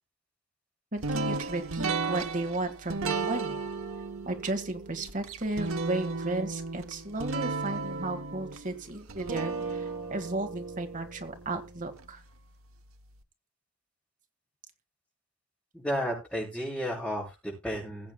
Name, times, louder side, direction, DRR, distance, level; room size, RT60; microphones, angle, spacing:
voice 1, 0.9-3.6 4.3-12.2, right 2 dB, 40° right, 6 dB, 1.8 m, -34 dB
sound 1, 1.0-12.1, right 4 dB, 75° right, 1.2 m, -34 dB
voice 2, 15.7-18.1, equal, 5° left, -7 dB, 7.0 m, -33 dB
21.0 x 8.6 x 2.3 m, 0.28 s
head